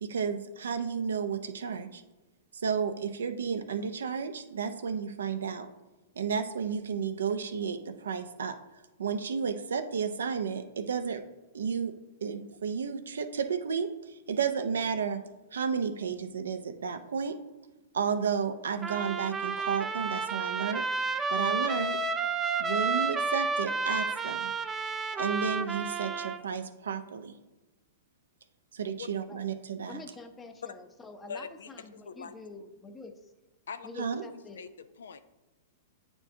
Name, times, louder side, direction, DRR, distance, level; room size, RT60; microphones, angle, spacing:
voice 1, 0.0-2.0 2.6-5.7 6.2-8.6 9.0-11.2 11.5-11.9 12.2-15.2 15.5-17.4 17.9-22.0 22.6-24.5 25.2-27.3 28.7-30.0 34.0-34.2, right 6 dB, 85° right, 8 dB, 0.6 m, -32 dB
Trumpet, 18.8-26.4, right 4 dB, 15° right, 0.4 m, -31 dB
voice 2, 29.9-33.3 33.8-34.6, left 3 dB, 15° left, 7 dB, 0.7 m, -46 dB
voice 3, 31.3-32.4 33.7-34.2 34.6-35.2, left 6 dB, 80° left, 11 dB, 0.4 m, -43 dB
8.7 x 4.4 x 2.7 m, 1.1 s
hypercardioid pair, 120°, 0 cm